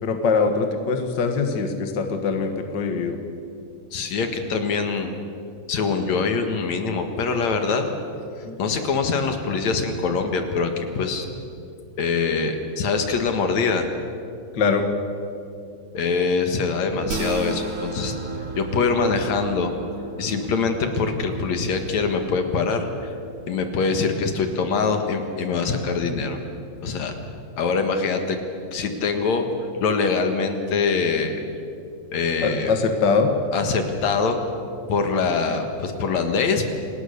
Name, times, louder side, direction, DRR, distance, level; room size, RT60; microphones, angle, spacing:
voice 1, 0.0-3.2 8.4-8.6 14.5-14.9 32.4-33.3, left 4 dB, 45° left, 6 dB, 1.6 m, -22 dB
voice 2, 3.9-5.1 5.7-7.9 8.4-11.3 12.0-13.9 15.9-19.7 20.2-23.2 23.5-26.4 26.8-27.2 27.6-28.4 28.7-29.5 29.8-31.4 32.1-32.7 33.5-34.4 34.9-36.6, left 4 dB, 60° left, 6 dB, 2.7 m, -24 dB
sound 1, 17.1-23.5, right 4 dB, 70° right, 2.8 m, -35 dB
28.5 x 18.5 x 6.7 m, 2.5 s
omnidirectional pair, 3.7 m